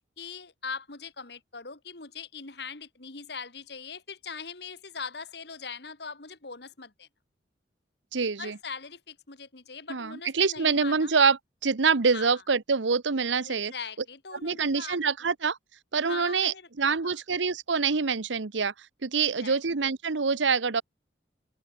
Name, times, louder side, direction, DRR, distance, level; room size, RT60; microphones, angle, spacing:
voice 1, 0.2-7.1 8.4-11.1 12.1-12.4 13.4-15.0 16.1-17.2 19.2-19.6, left 5 dB, 65° left, 2.2 m, -41 dB
voice 2, 8.1-8.6 9.9-13.7 14.4-15.6 15.9-18.7 19.0-20.8, right 5 dB, 90° right, 0.9 m, -26 dB
open air
head